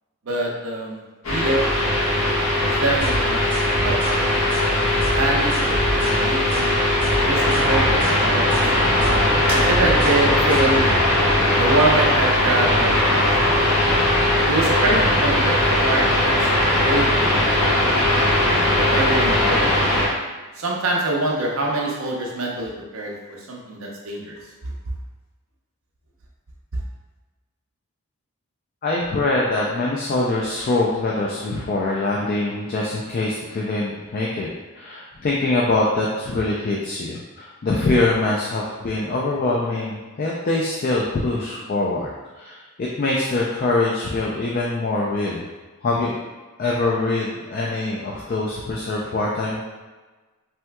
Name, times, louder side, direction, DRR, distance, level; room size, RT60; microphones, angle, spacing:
voice 1, 0.3-1.0 1.3-1.7 2.7-3.5 3.8-4.3 5.1-6.8 7.1-8.7 9.5-10.9 11.6-13.6 14.5-15.5 15.8-16.4 16.8-17.3 18.8-19.7 20.6-23.1 23.5-24.4, right 2 dB, 70° right, -1 dB, 0.6 m, -25 dB
sound 1, 1.2-20.1, left 1 dB, 70° left, 1.2 m, -19 dB
sound 2, 3.0-11.0, equal, 10° left, 0.9 m, -31 dB
sound 3, 9.5-15.0, right 1 dB, 25° right, 0.8 m, -35 dB
voice 2, 28.8-34.5 34.7-42.1 42.4-45.5 45.8-46.2 46.6-49.6, left 2 dB, 40° left, -4 dB, 0.3 m, -23 dB
3.3 x 2.9 x 2.2 m, 1.2 s
head